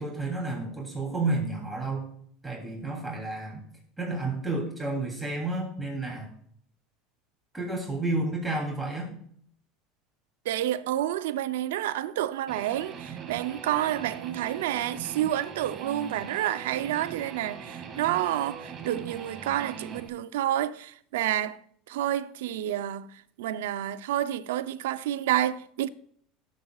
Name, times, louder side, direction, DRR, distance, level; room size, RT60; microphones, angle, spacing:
voice 1, 0.0-2.1 2.4-3.6 4.0-6.3 7.5-9.1, right 2 dB, 10° right, 3.0 m, -31 dB
voice 2, 10.5-21.6 21.9-23.1 23.4-25.9, right 12 dB, 85° right, 0.5 m, -29 dB
Guitar, 12.5-20.1, right 6 dB, 35° right, 2.1 m, -41 dB
18.0 x 7.4 x 2.4 m
supercardioid pair, 100°, 0 cm